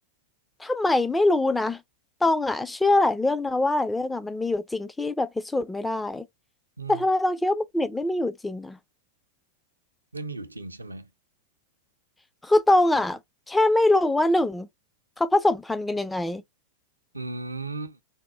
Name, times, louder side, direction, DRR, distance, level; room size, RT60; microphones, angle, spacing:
voice 1, 0.6-1.8 2.2-6.3 6.9-8.8 12.4-13.2 13.5-14.7 15.2-16.4, left 2 dB, 5° left, 0.4 m, -23 dB
voice 2, 10.1-11.1 17.1-18.0, right 3 dB, 80° right, 0.5 m, -35 dB
3.5 x 2.2 x 4.0 m
figure-of-eight pair, 90°, 0 cm